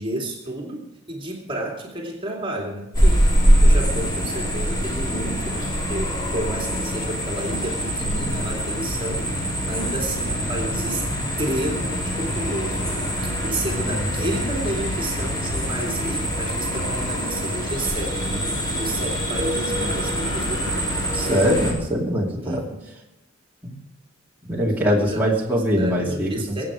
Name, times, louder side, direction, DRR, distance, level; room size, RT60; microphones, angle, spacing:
voice 1, 0.0-11.1 11.4-18.5 18.8-21.4 22.4-22.8 25.0-26.7, right 1 dB, 25° right, 1 dB, 2.6 m, -31 dB
sound 1, 2.9-21.7, equal, 20° left, 4.4 m, -24 dB
voice 2, 21.1-22.6 23.6-23.8 24.4-26.7, equal, 10° right, -4 dB, 2.6 m, -22 dB
22.5 x 8.7 x 5.0 m, 0.94 s
head